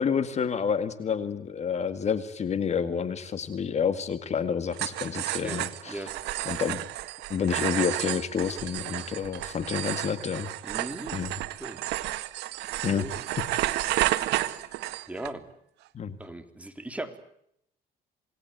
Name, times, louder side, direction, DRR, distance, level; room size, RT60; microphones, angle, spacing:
voice 1, 0.0-5.9 6.5-6.8 7.3-10.5 11.1-11.3 12.8-13.1 15.9-16.2, left 7 dB, 40° left, 12 dB, 2.1 m, -29 dB
sound 1, 4.7-15.3, right 16 dB, 85° right, 1.7 m, -31 dB
voice 2, 5.4-6.1 10.6-11.1 11.6-11.8 12.9-13.2 15.1-15.5 16.2-17.2, right 1 dB, 10° right, 7 dB, 3.6 m, -38 dB
28.0 x 20.0 x 9.4 m, 0.74 s
cardioid pair, 110°, 17 cm